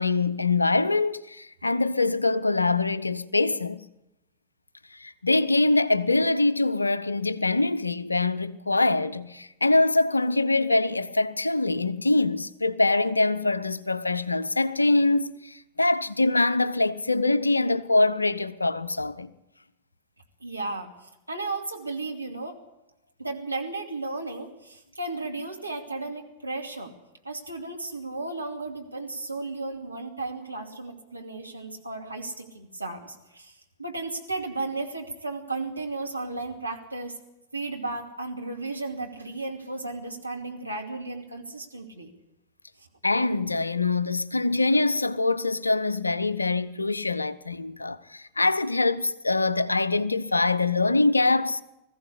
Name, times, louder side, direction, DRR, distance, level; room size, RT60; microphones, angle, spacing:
voice 1, 0.0-3.9 4.9-19.3 43.0-51.6, left 2 dB, 80° left, 0.7 m, -24 dB
voice 2, 20.4-20.9 21.3-22.6 23.2-26.9 27.2-37.1 37.5-42.1 42.8-42.9, right 3 dB, 85° right, 2.5 m, -34 dB
20.5 x 15.0 x 8.4 m
figure-of-eight pair, 90°, 0 cm